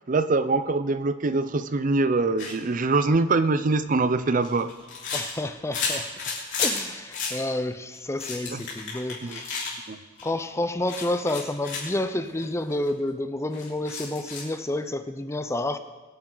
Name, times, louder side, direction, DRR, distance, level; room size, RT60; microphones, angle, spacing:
voice 1, 0.1-4.7 8.5-8.6 9.2-9.4 9.9-10.0, right 3 dB, 45° right, 12 dB, 0.5 m, -23 dB
sound 1, 2.4-2.5 3.9-6.8 7.1-7.4 7.9-9.8 10.2-10.4 10.9-11.9 12.4-12.5 12.7-12.9 13.5-14.5, left 5 dB, 70° left, 4.0 m, -32 dB
voice 2, 5.1-6.1 6.6-9.5 10.2-15.8, left 1 dB, 15° left, 10 dB, 0.5 m, -29 dB
23.0 x 9.0 x 3.9 m, 1.3 s
head